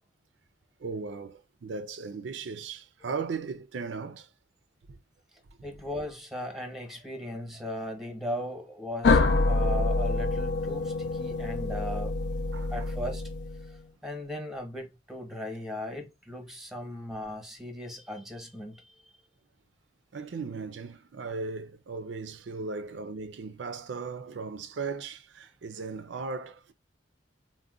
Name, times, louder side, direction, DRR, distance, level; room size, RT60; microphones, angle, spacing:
voice 1, 0.8-4.3 4.9-5.0 12.5-12.9 20.1-26.7, right 4 dB, 85° right, 0.5 m, -37 dB
voice 2, 5.6-12.1 12.7-13.2 14.0-18.9, left 1 dB, ahead, 0.9 m, -37 dB
sound 1, 9.0-13.7, left 3 dB, 70° left, 0.4 m, -26 dB
3.7 x 2.2 x 2.3 m
head